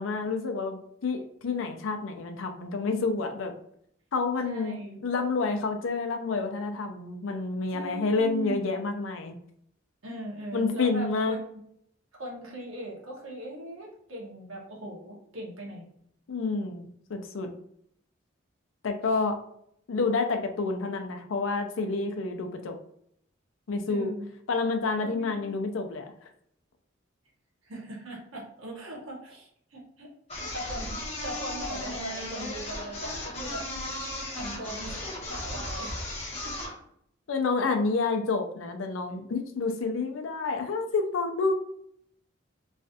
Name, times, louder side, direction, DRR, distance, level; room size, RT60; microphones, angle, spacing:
voice 1, 0.0-3.5 4.1-4.8 5.0-9.4 10.5-11.4 16.3-17.5 18.8-19.4 19.9-22.8 23.7-24.1 24.5-26.1 37.3-41.5, left 4 dB, 75° left, 5 dB, 0.5 m, -29 dB
voice 2, 4.4-5.0 7.7-8.6 10.0-11.7 12.2-15.8 23.9-24.3 25.0-25.5 27.6-33.7 34.3-34.9 35.3-36.1 36.4-36.5 39.1-39.2, right 1 dB, 90° right, -3 dB, 1.1 m, -39 dB
sound 1, 30.3-36.8, left 1 dB, 30° left, 1.1 m, -36 dB
3.1 x 2.4 x 2.6 m, 0.70 s
head